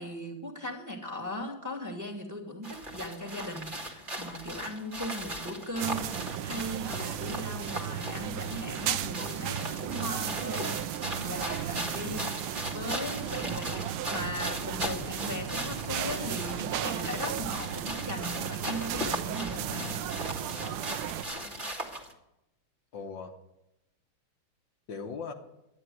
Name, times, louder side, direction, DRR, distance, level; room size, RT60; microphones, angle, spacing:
voice 1, 0.0-12.3 12.7-20.0, equal, 10° right, 1 dB, 2.2 m, -38 dB
sound 1, 2.6-22.1, equal, 25° right, 1.9 m, -38 dB
sound 2, 5.8-21.2, right 11 dB, 85° right, 1.6 m, -35 dB
voice 2, 19.7-20.8 22.9-23.3 24.9-25.3, left 5 dB, 65° left, 4 dB, 1.8 m, -41 dB
12.0 x 10.5 x 9.3 m, 0.90 s
omnidirectional pair, 2.3 m